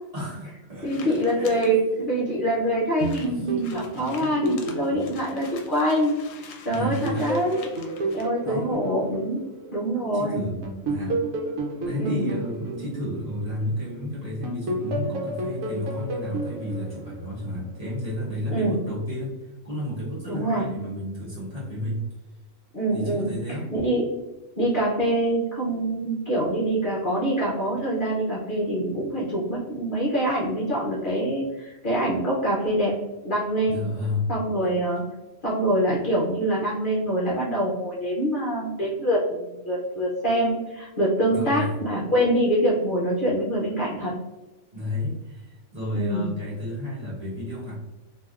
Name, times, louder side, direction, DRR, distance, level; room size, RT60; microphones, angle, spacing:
voice 1, 0.1-1.7 3.2-3.5 6.7-7.4 8.4-8.8 10.1-10.6 10.8-11.2 11.8-19.4 19.6-22.0 22.9-23.7 33.7-34.3 41.3-41.7 44.7-47.7, left 1 dB, 30° right, -8 dB, 1.0 m, -32 dB
sound 1, 0.8-1.7 2.4-2.5 2.7-2.8 3.0-8.3, left 5 dB, 75° left, 0.9 m, -46 dB
voice 2, 0.8-6.1 6.6-7.6 8.1-9.4 9.7-10.4 12.0-12.3 18.5-18.8 20.3-20.7 22.7-24.0 24.6-32.9 33.2-33.8 34.3-35.0 35.4-44.1 45.9-46.3, right 1 dB, 50° left, -6 dB, 0.7 m, -25 dB
sound 2, 3.0-6.3 6.8-10.1 10.6-13.9 14.4-17.7, right 1 dB, 80° right, 1.0 m, -32 dB
3.2 x 2.7 x 2.3 m, 1.0 s
omnidirectional pair, 1.4 m